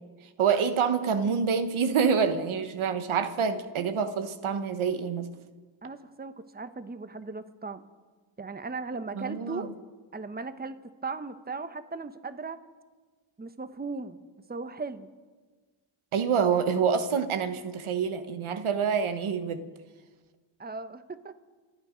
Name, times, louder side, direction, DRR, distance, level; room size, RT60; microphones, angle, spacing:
voice 1, 0.4-5.3 9.1-9.7 16.1-19.7, right 6 dB, 75° right, 10 dB, 1.2 m, -27 dB
voice 2, 5.8-7.8 8.4-9.7 10.1-10.7 11.0-12.6 13.4-14.2 14.5-15.1 20.6-21.3, right 4 dB, 20° right, 11 dB, 1.0 m, -37 dB
27.5 x 9.5 x 5.1 m, 1.4 s
cardioid pair, 55°, 49 cm